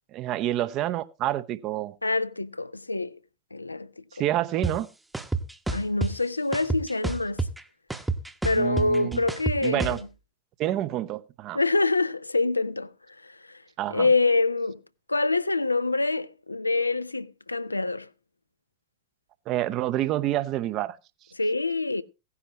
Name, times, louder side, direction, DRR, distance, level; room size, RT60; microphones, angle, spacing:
voice 1, 0.1-1.9 4.2-4.9 8.5-9.2 9.6-10.0 10.6-11.6 13.8-14.1 19.5-21.0, right 13 dB, 35° right, 0.8 m, -28 dB
voice 2, 2.0-3.2 3.5-3.9 5.7-7.5 8.4-10.0 11.5-12.9 13.2-13.6 13.9-14.8 15.1-18.1 21.4-22.0, left 3 dB, 80° left, 0.5 m, -26 dB
sound 1, 4.6-4.7 5.1-6.1 6.5-7.6 7.9-10.0, right 3 dB, 5° right, 1.0 m, -28 dB
16.5 x 9.9 x 2.9 m
figure-of-eight pair, 90°, 0 cm